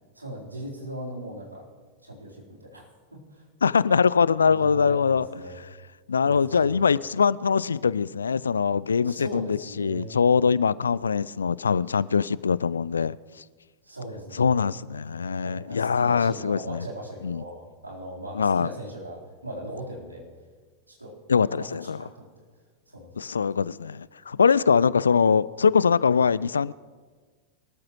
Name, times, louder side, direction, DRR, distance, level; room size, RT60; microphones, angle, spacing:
voice 1, 0.1-1.6 2.0-2.8 3.1-3.4 4.4-5.6 6.2-6.8 9.0-10.1 13.8-14.7 15.4-20.2 20.9-21.2 21.5-22.3 22.9-23.3, right 1 dB, 85° right, 3.9 m, -39 dB
voice 2, 3.6-5.3 6.1-13.2 14.4-16.8 17.2-17.4 18.3-18.7 21.3-22.0 23.2-26.7, left 6 dB, 70° left, 0.3 m, -22 dB
23.0 x 13.5 x 3.1 m
figure-of-eight pair, 90°, 0 cm